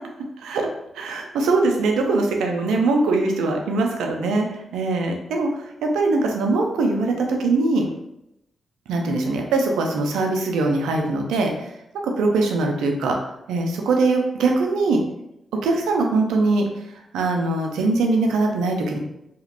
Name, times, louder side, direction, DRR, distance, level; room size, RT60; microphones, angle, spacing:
voice 1, 0.4-0.7 0.9-7.9 8.9-11.7 12.0-13.2 13.5-15.0 15.6-16.7 17.1-19.0, right 3 dB, 85° right, 2 dB, 0.4 m, -22 dB
2.9 x 2.8 x 2.5 m, 0.83 s
supercardioid pair, 45°, 0 cm